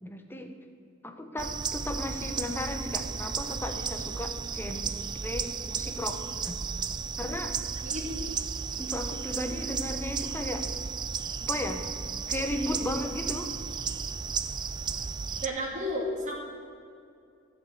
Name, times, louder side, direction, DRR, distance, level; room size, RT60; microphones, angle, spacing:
voice 1, 0.0-0.5 1.0-6.6 7.2-7.6 8.8-10.6 11.4-11.8 12.3-13.5, left 1 dB, 10° left, 5 dB, 0.8 m, -35 dB
sound 1, 1.4-15.5, right 6 dB, 20° right, 0.3 m, -34 dB
voice 2, 7.8-8.2 15.4-16.3, equal, 35° right, -2 dB, 2.2 m, -32 dB
15.5 x 5.3 x 7.7 m, 2.4 s
head